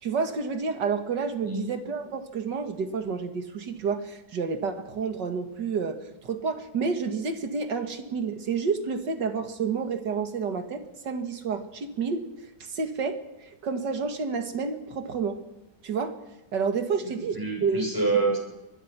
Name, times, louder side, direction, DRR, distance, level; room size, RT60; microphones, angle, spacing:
voice 1, 0.0-15.4 15.8-16.2 16.5-17.8, right 5 dB, 90° right, 7 dB, 2.5 m, -30 dB
voice 2, 17.0-18.4, right 3 dB, 10° right, -1 dB, 7.5 m, -27 dB
24.5 x 21.0 x 6.0 m, 0.98 s
omnidirectional pair, 1.8 m